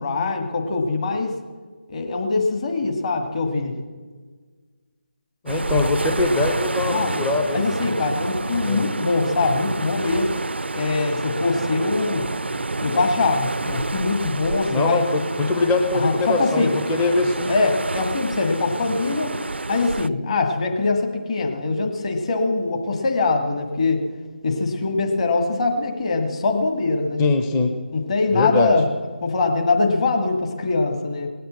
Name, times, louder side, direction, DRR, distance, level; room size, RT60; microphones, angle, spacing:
voice 1, 0.0-1.4 1.9-3.8 6.9-7.2 7.5-10.3 10.7-12.3 12.8-15.0 15.9-16.7 17.5-19.3 19.7-24.0 24.4-27.3 27.9-28.9 29.2-31.3, left 3 dB, 35° left, 3 dB, 1.8 m, -22 dB
voice 2, 5.4-7.7 8.6-8.8 14.7-17.5 27.2-27.7 28.3-28.7, left 3 dB, 10° left, 5 dB, 0.6 m, -22 dB
sound 1, 5.5-20.1, right 3 dB, 75° right, 0.4 m, -28 dB
19.0 x 8.0 x 7.7 m, 1.5 s
figure-of-eight pair, 155°, 6 cm